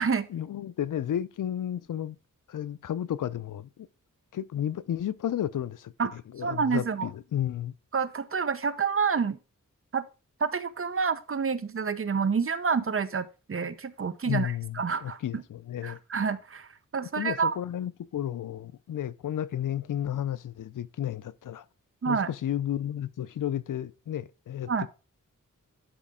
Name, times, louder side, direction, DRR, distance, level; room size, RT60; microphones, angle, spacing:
voice 1, 0.3-2.2 2.5-3.9 4.3-7.7 14.2-16.0 17.2-21.6 22.1-24.9, left 10 dB, 80° left, 0.5 m, -32 dB
voice 2, 6.4-7.1 7.9-9.4 9.9-10.0 10.4-15.4 15.8-17.5 22.0-22.3 24.7-24.9, right 5 dB, 45° right, 0.7 m, -28 dB
11.5 x 5.0 x 3.6 m
wide cardioid pair, 90°, 31 cm